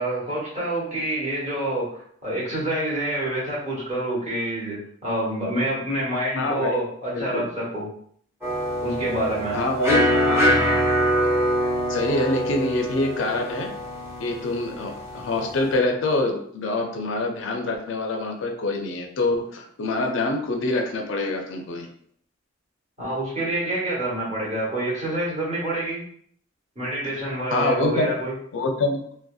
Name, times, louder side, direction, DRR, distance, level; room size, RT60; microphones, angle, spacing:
voice 1, 0.0-7.9 8.8-9.6 23.0-26.0 26.7-28.3, right 1 dB, 30° right, -7 dB, 1.1 m, -27 dB
voice 2, 6.4-6.8 7.1-7.5 9.5-10.8 11.9-13.7 14.2-21.9 27.5-28.1 28.5-29.0, left 2 dB, 65° left, 3 dB, 0.4 m, -25 dB
sound 1, 8.4-15.8, equal, 10° right, 0.7 m, -24 dB
2.6 x 2.1 x 2.3 m, 0.64 s
head